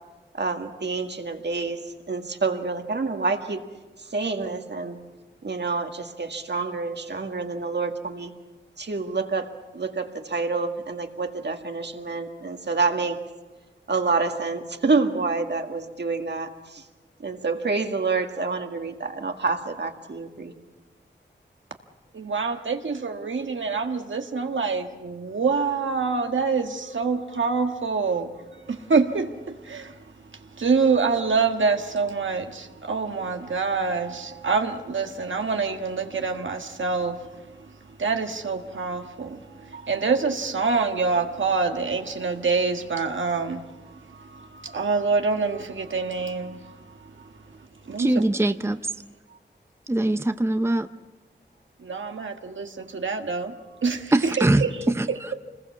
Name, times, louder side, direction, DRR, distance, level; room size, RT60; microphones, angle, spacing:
voice 1, 0.4-1.8 2.1-3.6 4.1-5.0 5.4-8.3 8.8-9.5 9.7-13.2 13.9-16.8 17.2-20.5, right 4 dB, 65° right, 2.0 m, -27 dB
voice 2, 22.1-28.3 28.7-29.9 30.6-37.2 38.0-46.8 47.9-48.1 51.8-53.5 53.8-54.7 55.1-55.3, right 4 dB, 85° right, 1.5 m, -26 dB
voice 3, 48.0-48.8 49.9-50.9 54.1-55.1, right 1 dB, 15° right, 0.7 m, -22 dB
26.5 x 20.5 x 7.2 m
wide cardioid pair, 85°, 19 cm